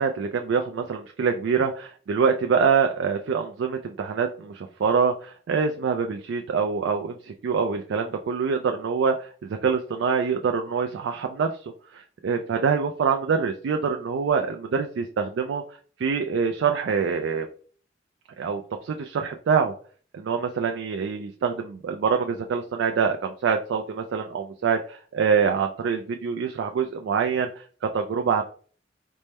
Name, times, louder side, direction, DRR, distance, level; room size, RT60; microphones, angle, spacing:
voice 1, 0.0-11.5 11.9-15.6 16.0-17.5 18.4-19.7 20.1-27.6 27.9-28.4, right 6 dB, 75° right, 4 dB, 0.3 m, -25 dB
4.2 x 2.1 x 3.3 m, 0.44 s
head